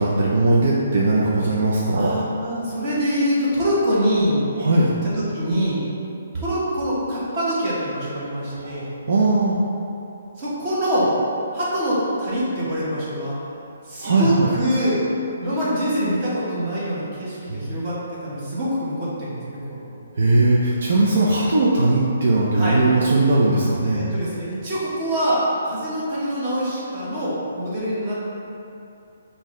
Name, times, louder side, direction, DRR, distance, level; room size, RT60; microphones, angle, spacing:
voice 1, 0.0-2.1 4.6-4.9 8.5-9.6 14.0-14.5 17.5-17.6 20.2-24.0, right 2 dB, 60° right, -5 dB, 0.5 m, -19 dB
voice 2, 1.9-4.4 5.0-5.8 6.3-8.9 10.4-11.1 11.5-13.3 13.8-15.0 15.4-18.0 18.2-19.9 22.5-22.8 23.9-28.2, equal, 25° right, -8 dB, 1.2 m, -24 dB
5.6 x 2.7 x 3.2 m, 2.7 s
hypercardioid pair, 170°, 0 cm